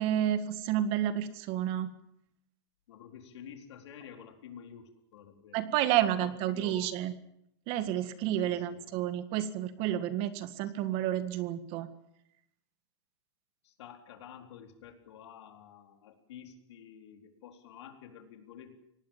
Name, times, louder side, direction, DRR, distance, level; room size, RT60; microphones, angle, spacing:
voice 1, 0.0-1.9 5.5-7.1 7.7-11.9, right 11 dB, 40° right, 12 dB, 1.8 m, -30 dB
voice 2, 2.9-5.6 6.2-6.9 8.4-8.8 10.6-10.7 13.6-18.7, left 8 dB, 70° left, 4 dB, 4.2 m, -50 dB
24.5 x 18.5 x 7.4 m, 0.75 s
supercardioid pair, 145°, 15 cm